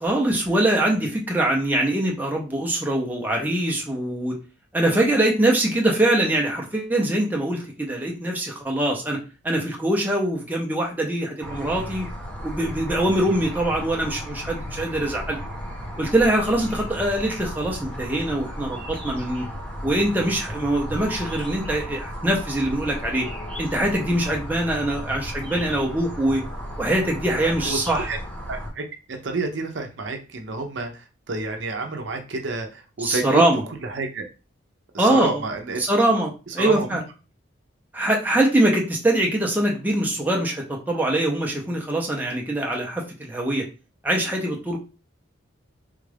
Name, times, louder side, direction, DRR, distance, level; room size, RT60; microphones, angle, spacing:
voice 1, 0.0-4.3 4.7-9.2 9.4-12.1 12.4-15.4 16.0-19.4 19.8-23.3 23.6-26.4 26.8-28.1 33.0-33.6 35.0-35.3 35.8-37.0 37.9-43.6 44.0-44.8, right 1 dB, 10° right, -1 dB, 0.6 m, -23 dB
sound 1, 11.4-28.7, equal, 5° left, 0.9 m, -34 dB
voice 2, 27.6-28.2 28.5-33.5 33.8-34.2 34.9-35.8 36.6-37.0, right 3 dB, 65° right, 4 dB, 0.6 m, -29 dB
3.6 x 2.4 x 3.3 m, 0.33 s
head